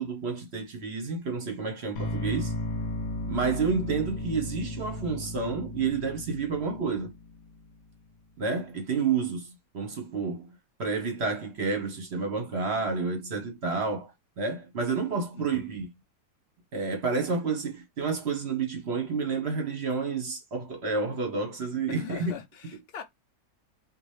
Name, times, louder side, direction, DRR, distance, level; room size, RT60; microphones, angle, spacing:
voice 1, 0.0-2.5 3.2-7.1 8.4-10.5 10.8-14.1 14.4-15.9 16.7-22.3, right 4 dB, 45° right, 1.0 m, -30 dB
sound 1, 1.9-8.0, left 2 dB, 70° left, 1.3 m, -35 dB
voice 2, 21.9-23.0, left 7 dB, 50° left, 0.7 m, -41 dB
4.1 x 2.7 x 3.2 m
omnidirectional pair, 1.8 m